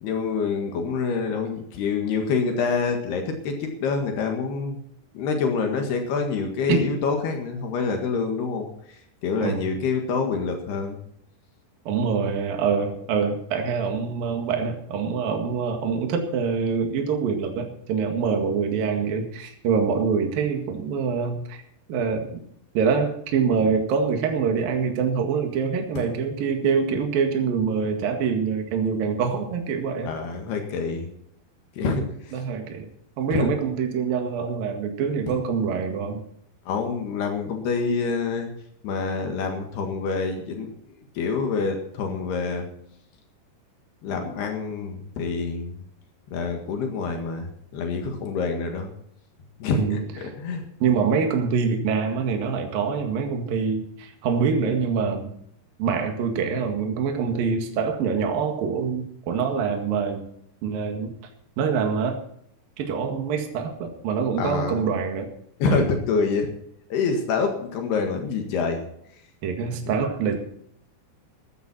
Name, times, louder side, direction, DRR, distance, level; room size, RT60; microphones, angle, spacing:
voice 1, 0.0-4.8 5.2-11.0 26.0-26.1 30.1-31.1 31.7-32.3 33.3-33.5 35.3-35.4 36.7-38.5 38.8-40.7 41.2-42.7 44.0-45.8 46.3-48.9 49.6-50.6 64.4-64.8 65.6-66.5 66.9-68.8 69.9-70.0, left 5 dB, 75° left, 4 dB, 3.8 m, -26 dB
voice 2, 9.4-9.8 11.9-21.6 21.9-22.4 22.8-30.1 31.8-32.1 32.3-32.9 33.2-36.2 49.7-50.3 50.8-55.3 55.8-60.3 60.6-61.1 61.6-62.2 62.8-65.3 65.7-65.9 69.4-70.4, right 6 dB, 60° right, 4 dB, 3.5 m, -25 dB
15.0 x 13.0 x 4.4 m, 0.70 s
omnidirectional pair, 4.8 m